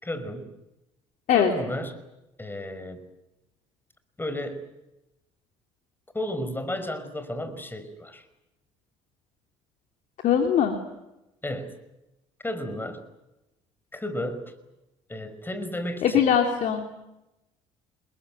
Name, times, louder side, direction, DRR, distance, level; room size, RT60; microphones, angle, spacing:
voice 1, 0.0-0.5 1.3-2.0 2.4-3.1 4.2-4.7 6.1-8.2 11.4-11.8 12.4-13.0 13.9-14.5 15.1-16.3, left 1 dB, 15° left, 11 dB, 5.2 m, -33 dB
voice 2, 10.2-10.8 16.0-16.9, left 8 dB, 65° left, 4 dB, 3.1 m, -21 dB
27.5 x 21.5 x 9.1 m, 0.95 s
hypercardioid pair, 65°, 14 cm